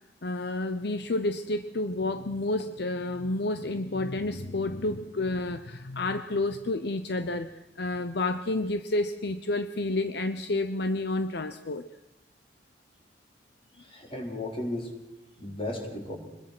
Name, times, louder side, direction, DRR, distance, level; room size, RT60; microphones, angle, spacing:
voice 1, 0.2-11.8, left 2 dB, 65° left, 10 dB, 0.8 m, -30 dB
voice 2, 13.8-14.9 15.4-16.2, left 1 dB, 30° left, 2 dB, 4.4 m, -34 dB
25.0 x 21.0 x 6.2 m, 0.92 s
head